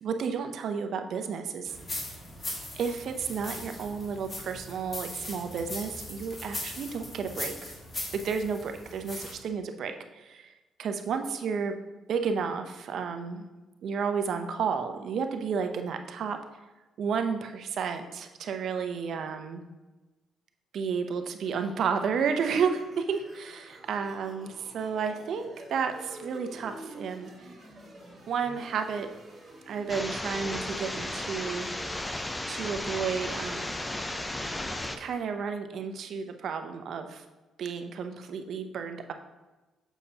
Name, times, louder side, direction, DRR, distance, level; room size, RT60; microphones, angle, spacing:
voice 1, 0.0-1.7 2.7-7.7 8.1-10.5 10.8-11.8 12.1-13.5 13.8-16.4 17.0-19.6 20.7-27.5 28.3-29.1 29.7-31.7 32.5-33.8 35.0-37.2 37.6-39.1, right 6 dB, 65° right, 6 dB, 0.6 m, -32 dB
sound 1, 1.7-9.3, left 1 dB, 35° left, 1.8 m, -39 dB
sound 2, 21.5-35.1, right 1 dB, 35° right, 2.1 m, -49 dB
sound 3, 29.9-35.0, left 1 dB, 15° left, 0.5 m, -34 dB
7.1 x 5.6 x 2.8 m, 1.1 s
cardioid pair, 90°, 0 cm